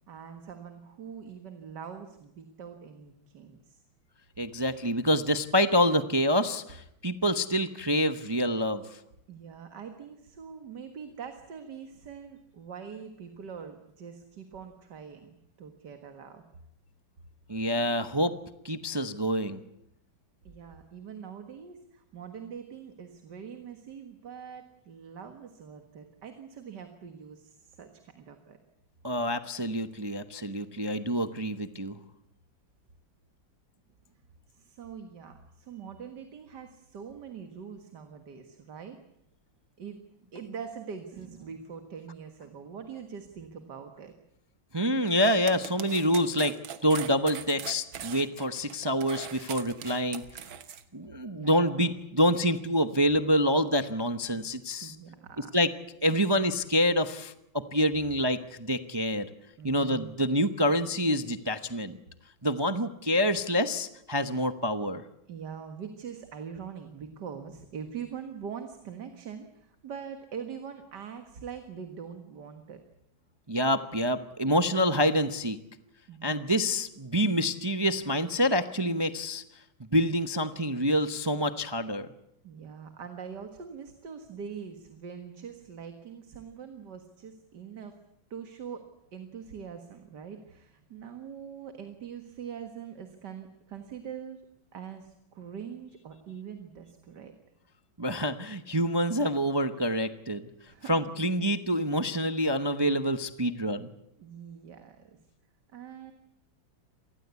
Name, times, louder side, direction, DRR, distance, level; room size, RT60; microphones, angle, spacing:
voice 1, 0.1-3.8 9.3-16.4 20.4-28.6 34.5-39.0 39.8-44.1 51.4-52.0 54.3-54.5 54.8-55.5 59.6-60.2 65.3-72.8 76.1-76.6 82.4-88.0 88.3-88.8 89.1-94.4 94.7-97.3 100.7-101.1 104.2-105.1 105.7-106.1, right 7 dB, 60° right, 7 dB, 2.2 m, -43 dB
voice 2, 4.4-9.0 17.5-18.3 18.6-19.6 29.0-32.0 44.7-46.5 46.8-50.2 50.9-54.9 55.4-55.7 56.0-59.3 59.6-62.0 62.4-65.0 73.5-75.6 76.2-79.4 79.9-82.1 98.0-100.5 100.9-103.9, equal, 25° right, 10 dB, 0.5 m, -27 dB
sound 1, 45.0-50.8, right 9 dB, 85° right, 2.1 m, -41 dB
26.5 x 19.5 x 8.2 m, 0.79 s
omnidirectional pair, 2.1 m